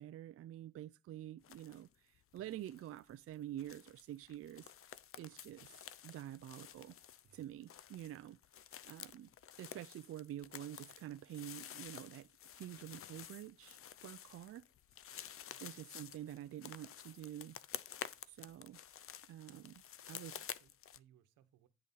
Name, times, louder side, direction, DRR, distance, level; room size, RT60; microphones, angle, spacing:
voice 1, 0.0-4.7 5.2-5.8 6.0-6.9 7.3-8.4 8.9-9.3 9.6-12.3 12.5-14.6 15.6-17.6 17.9-18.0 18.3-18.8 19.3-20.4, right 12 dB, 50° right, 0.4 m, -48 dB
sound 1, 1.4-1.9 2.1-21.0, left 10 dB, 45° left, 0.6 m, -52 dB
voice 2, 15.3-15.7 20.1-21.7, right 10 dB, 85° right, 1.2 m, -69 dB
9.8 x 3.9 x 5.5 m
cardioid pair, 90°, 30 cm